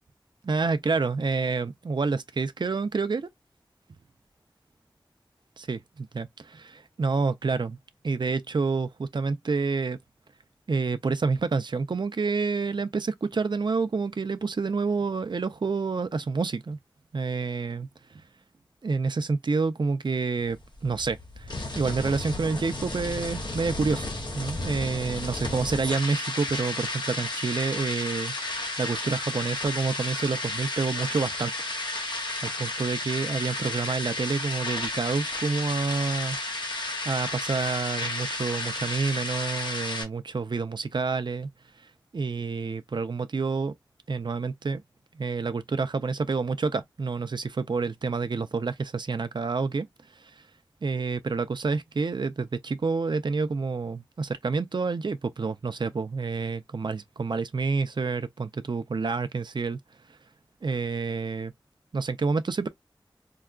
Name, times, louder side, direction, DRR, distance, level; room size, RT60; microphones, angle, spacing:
voice 1, 0.4-3.3 5.6-7.8 8.0-10.0 10.7-16.8 17.1-17.9 18.8-20.6 20.8-24.1 24.3-31.5 32.4-36.4 36.8-41.5 42.1-43.7 44.1-44.8 45.2-49.9 50.2-50.3 50.8-59.8 60.6-61.5 61.9-62.7, right 4 dB, 65° right, 0.5 m, -28 dB
sound 1, 20.4-40.0, left 2 dB, 65° left, 1.3 m, -33 dB
4.6 x 2.3 x 2.3 m
wide cardioid pair, 55°, 8 cm